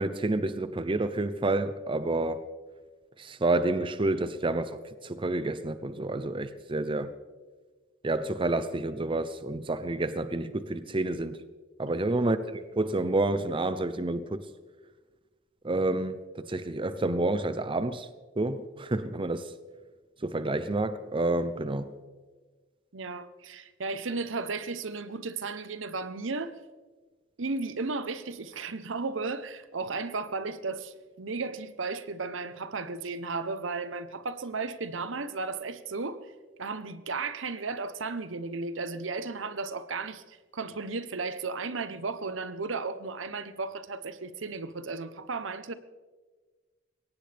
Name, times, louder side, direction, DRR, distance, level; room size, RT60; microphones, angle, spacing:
voice 1, 0.0-2.4 3.2-4.8 5.0-7.1 8.0-11.4 11.8-14.4 15.6-18.1 18.4-19.5 20.2-21.9, right 2 dB, 25° right, 0.6 m, -29 dB
voice 2, 22.9-26.5 27.4-36.3 36.6-45.7, right 4 dB, 75° right, 0.9 m, -34 dB
22.0 x 18.0 x 3.5 m
head